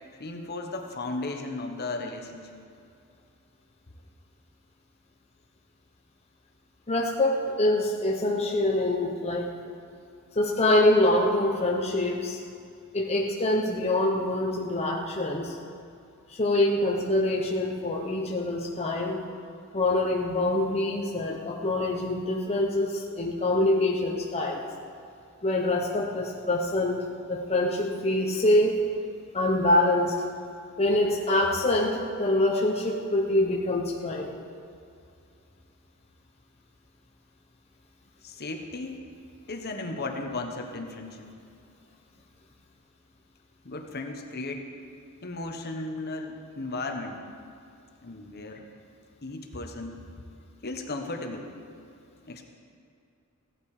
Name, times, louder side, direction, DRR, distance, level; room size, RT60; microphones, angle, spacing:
voice 1, 0.2-2.5 38.2-39.0 39.5-41.3 43.6-44.7 45.2-47.2 48.0-48.7 49.2-50.1 50.6-51.5 52.2-52.4, left 2 dB, 50° left, 3 dB, 1.2 m, -35 dB
voice 2, 6.9-9.5 10.3-12.4 12.9-15.6 16.3-19.2 19.7-24.6 25.4-27.0 27.3-28.8 29.3-30.1 30.8-34.4, left 1 dB, 30° left, -2 dB, 1.0 m, -25 dB
17.0 x 11.5 x 5.0 m, 2.5 s
head